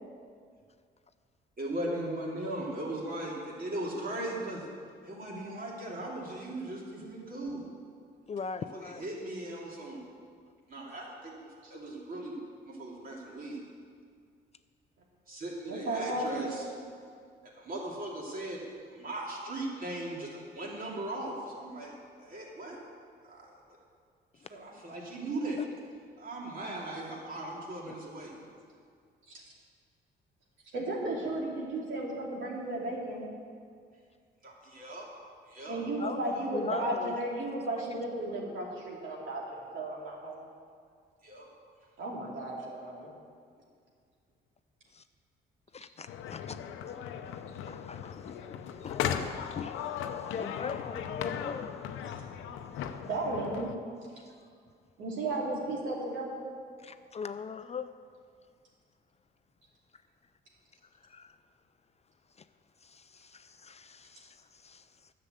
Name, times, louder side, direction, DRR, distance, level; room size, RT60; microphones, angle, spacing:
voice 1, 1.6-4.6 5.0-7.7 8.7-10.0 10.7-12.3 12.7-13.6 15.3-16.6 17.5-18.6 18.9-22.8 23.2-23.5 24.5-25.6 26.2-28.4 34.4-35.1 35.5-35.8 41.2-41.5, right 1 dB, 45° right, -3 dB, 3.0 m, -38 dB
voice 2, 8.3-9.1 24.4-24.5 25.6-25.7 36.0-37.2 44.9-45.0 45.7-46.9 47.6-51.8 52.7-52.8 54.1-54.2 56.8-57.9 61.0-61.4 62.4-62.5 62.8-65.1, left 6 dB, 35° left, 11 dB, 0.4 m, -40 dB
voice 3, 15.7-16.4 29.3-29.4 30.7-33.3 35.7-40.4 42.0-43.1 52.9-53.7 55.0-56.4, right 2 dB, 75° right, -4 dB, 2.9 m, -34 dB
sound 1, 46.1-53.7, left 8 dB, 90° left, 0.6 m, -37 dB
10.0 x 6.8 x 7.9 m, 2.1 s
cardioid pair, 90°, 20 cm